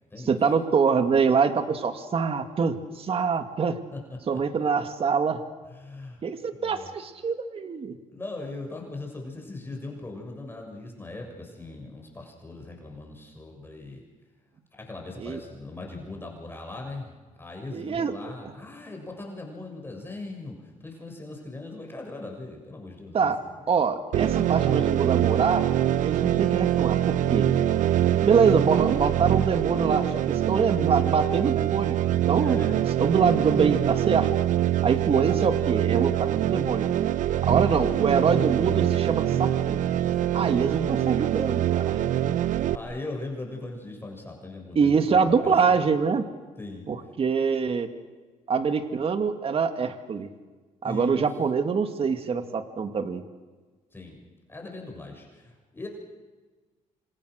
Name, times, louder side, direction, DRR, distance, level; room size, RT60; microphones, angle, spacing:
voice 1, 0.3-3.8 4.3-5.4 6.2-8.0 15.2-15.4 17.7-18.1 23.1-23.4 23.7-25.7 26.0-27.5 28.2-34.3 34.8-36.9 37.4-39.8 40.3-42.0 44.8-46.3 46.9-47.9 48.5-50.3 50.8-53.2, right 5 dB, 45° right, 7 dB, 2.1 m, -25 dB
voice 2, 3.9-4.4 5.7-6.2 6.5-6.9 8.1-14.1 14.7-17.1 17.4-23.8 24.3-24.8 26.2-26.5 32.4-32.9 37.6-38.3 40.1-40.6 41.9-45.8 46.6-46.9 50.8-51.3 53.9-54.2 54.5-55.9, left 2 dB, 15° left, 1 dB, 7.0 m, -40 dB
sound 1, 24.1-42.8, right 12 dB, 70° right, 0.9 m, -24 dB
28.0 x 27.0 x 6.6 m, 1.3 s
cardioid pair, 90°, 13 cm